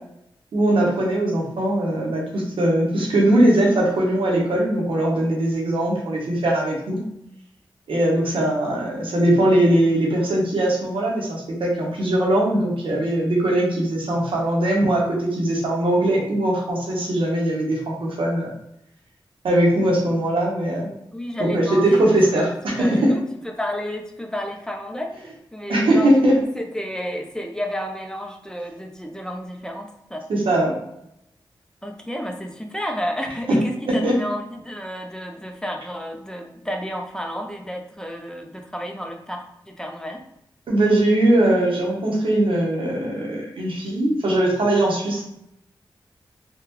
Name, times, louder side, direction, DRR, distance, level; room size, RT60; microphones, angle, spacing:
voice 1, 0.5-7.0 7.9-18.5 19.4-20.9 21.5-23.1 25.7-26.3 30.3-30.7 33.5-33.6 33.9-34.2 40.7-45.2, right 1 dB, 85° right, -2 dB, 0.9 m, -20 dB
voice 2, 21.1-22.0 22.8-30.3 31.8-40.2, equal, 5° left, 3 dB, 0.6 m, -31 dB
3.4 x 2.3 x 3.0 m, 0.81 s
cardioid pair, 40°, 9 cm